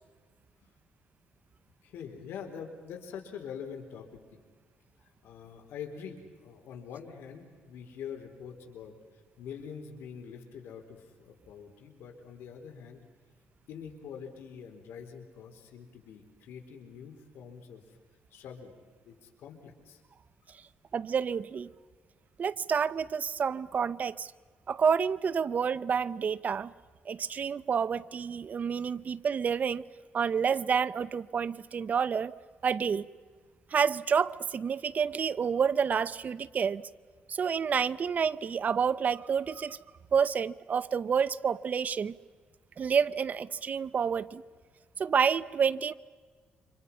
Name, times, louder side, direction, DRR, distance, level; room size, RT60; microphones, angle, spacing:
voice 1, 1.8-4.4 5.2-8.9 9.4-13.0 13.7-18.0 18.3-18.7 19.0-20.0, left 7 dB, 85° left, 4.3 m, -45 dB
voice 2, 20.9-21.7 22.4-24.3 24.7-26.7 27.1-29.8 30.1-32.3 32.6-33.1 33.7-36.8 37.3-39.8 40.1-42.2 42.8-44.4 45.0-45.9, right 6 dB, 45° right, 0.8 m, -29 dB
30.0 x 26.5 x 5.7 m
cardioid pair, 110°, 4 cm